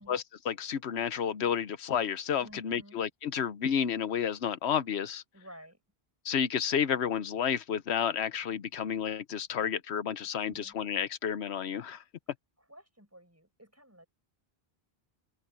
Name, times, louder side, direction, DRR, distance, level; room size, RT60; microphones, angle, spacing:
voice 1, 0.0-5.2 6.2-12.0, left 8 dB, 85° left, 1.1 m, -31 dB
voice 2, 2.4-3.1 5.3-5.8 10.3-10.8 12.6-14.1, equal, 15° right, 7.2 m, -53 dB
open air
omnidirectional pair, 1.1 m